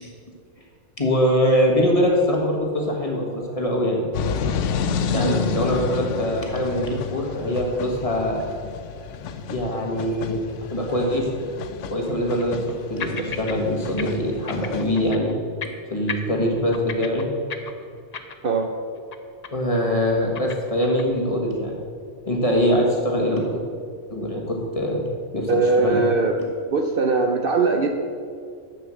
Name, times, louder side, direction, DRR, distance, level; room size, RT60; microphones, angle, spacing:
voice 1, 1.0-4.1 5.1-8.5 9.5-11.3 11.9-15.3 15.9-17.3 19.5-21.8 22.2-23.6 24.1-25.5 25.8-26.0, equal, 30° left, -1 dB, 1.5 m, -23 dB
sound 1, 4.1-15.1, left 6 dB, 75° left, 0.9 m, -30 dB
sound 2, 6.8-7.0 7.3-7.4 8.0-8.1 11.3-11.4 12.1-12.8 13.0-13.6 13.8-14.0 14.3-15.3 15.6-15.8 16.1-18.7 19.0-19.2 19.4-19.8 20.0-21.2, left 6 dB, 45° left, 0.6 m, -35 dB
voice 2, 25.5-26.3 26.7-27.9, right 3 dB, 55° right, 4 dB, 0.8 m, -20 dB
7.0 x 6.8 x 7.6 m, 2.2 s
omnidirectional pair, 1.3 m